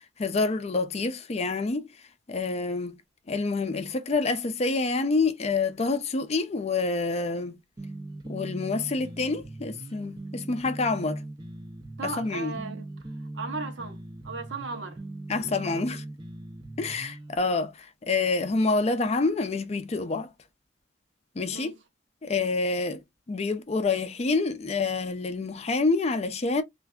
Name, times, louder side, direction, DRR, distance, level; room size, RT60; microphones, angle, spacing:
voice 1, 0.2-1.9 2.3-3.0 3.3-7.6 8.3-11.2 12.0-12.6 15.3-16.0 16.8-20.3 21.4-21.7 22.2-23.0 23.3-26.6, left 3 dB, 35° left, 0.4 m, -27 dB
sound 1, 7.8-17.4, right 2 dB, 25° right, 0.5 m, -40 dB
voice 2, 12.0-12.9 13.3-15.0 15.3-15.8 21.5-21.7, right 3 dB, 75° right, 0.9 m, -37 dB
3.3 x 2.5 x 2.2 m
head